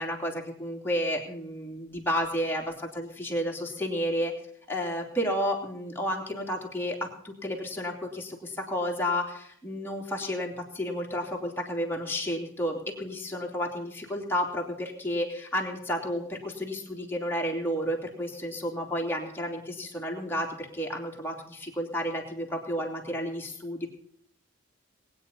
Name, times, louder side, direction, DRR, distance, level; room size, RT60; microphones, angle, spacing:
voice 1, 0.0-4.3 4.7-23.9, equal, 10° left, -1 dB, 2.9 m, -31 dB
20.0 x 9.7 x 5.5 m, 0.65 s
head